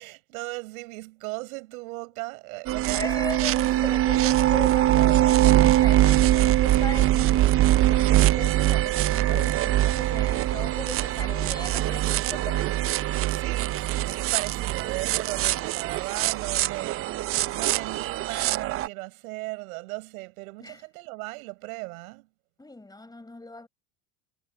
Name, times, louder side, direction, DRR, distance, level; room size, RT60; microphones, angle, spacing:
voice 1, 0.0-4.0 13.3-22.3, right 24 dB, 80° right, 5.0 m, -37 dB
sound 1, 2.7-18.9, right 14 dB, 35° right, 0.5 m, -23 dB
voice 2, 2.9-13.0 20.6-20.8 22.6-23.7, left 2 dB, 10° left, 5.0 m, -38 dB
supercardioid pair, 110°, 42 cm